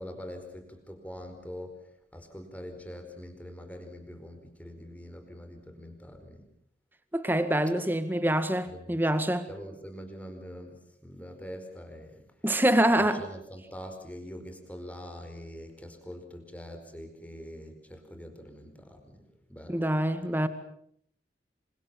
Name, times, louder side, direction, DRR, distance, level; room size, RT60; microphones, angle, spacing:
voice 1, 0.0-1.7 2.1-6.5 8.7-9.0 9.5-12.2 13.0-19.2 19.5-19.9, equal, 10° left, 4.8 m, -44 dB
voice 2, 7.1-9.5 12.4-13.2 19.7-20.5, right 1 dB, 10° right, 2.0 m, -25 dB
28.0 x 25.5 x 7.1 m
head